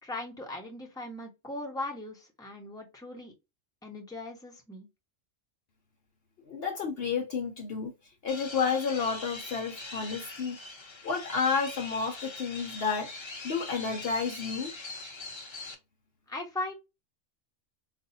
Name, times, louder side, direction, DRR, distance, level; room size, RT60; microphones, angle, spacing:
voice 1, 0.0-3.3 3.8-4.9 16.3-16.7, left 2 dB, 5° left, 0.9 m, -38 dB
voice 2, 6.5-10.7 11.0-14.7, left 5 dB, 60° left, 0.8 m, -31 dB
sound 1, 8.3-15.7, left 3 dB, 30° left, 0.6 m, -42 dB
4.1 x 2.5 x 2.7 m
omnidirectional pair, 1.3 m